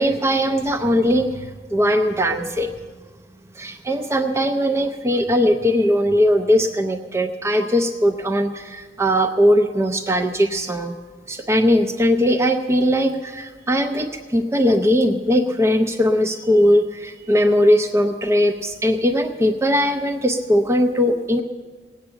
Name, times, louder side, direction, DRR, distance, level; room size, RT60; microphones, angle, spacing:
voice 1, 0.0-2.7 3.6-11.0 11.3-21.4, equal, 15° right, 4 dB, 0.6 m, -19 dB
18.5 x 8.7 x 7.1 m, 1.5 s
head